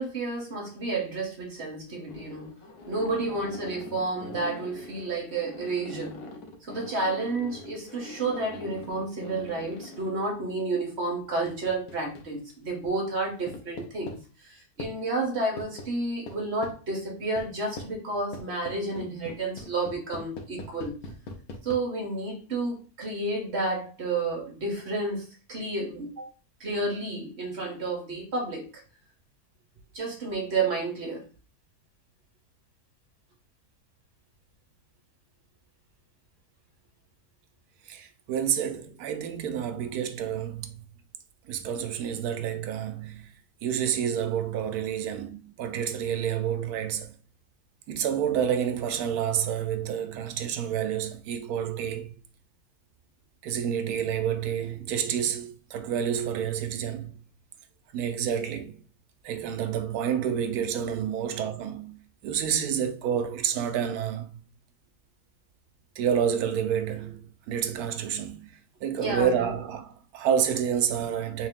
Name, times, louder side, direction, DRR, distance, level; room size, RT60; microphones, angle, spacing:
voice 1, 0.0-2.6 2.9-6.2 6.6-20.9 21.6-26.3 26.6-28.8 29.9-31.2 69.0-69.4, right 2 dB, 50° right, 1.2 m, -31 dB
sound 1, 2.1-10.1 11.5-12.5 13.5-14.2 14.8-14.9 15.6-15.9 16.3-16.8 17.4-17.5 17.8-17.9 18.3-21.8, left 2 dB, 80° left, 1.3 m, -42 dB
voice 2, 37.9-40.8 41.5-43.3 43.6-47.1 47.9-52.1 53.4-57.1 57.9-58.8 59.2-64.4 66.0-68.5 68.8-71.5, right 8 dB, 80° right, 1.1 m, -29 dB
3.7 x 2.7 x 3.5 m
omnidirectional pair, 1.6 m